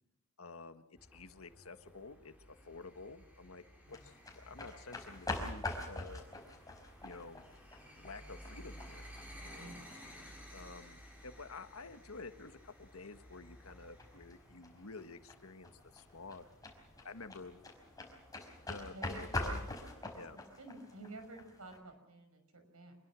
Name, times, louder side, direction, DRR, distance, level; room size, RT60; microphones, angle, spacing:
voice 1, 0.4-3.6 3.9-6.2 7.0-7.5 8.0-9.1 9.4-9.7 10.5-16.5 17.0-17.6 18.7-19.6 20.1-20.4, left 3 dB, 70° left, 9 dB, 1.6 m, -50 dB
sound 1, 1.0-20.3, equal, 5° right, 6.0 m, -56 dB
sound 2, 3.9-21.8, left 2 dB, 15° left, 4.9 m, -45 dB
voice 2, 9.5-9.9 18.9-19.6 20.3-22.9, right 2 dB, 80° right, 7 dB, 6.0 m, -51 dB
25.5 x 21.5 x 6.3 m, 0.86 s
head